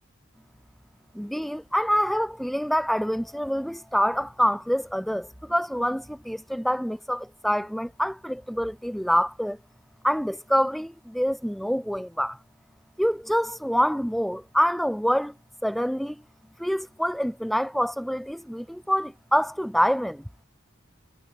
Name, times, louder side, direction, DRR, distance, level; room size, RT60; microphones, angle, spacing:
voice 1, 1.1-9.6 10.0-12.4 13.0-15.3 15.6-16.2 16.6-20.3, equal, ahead, 1.2 m, -26 dB
head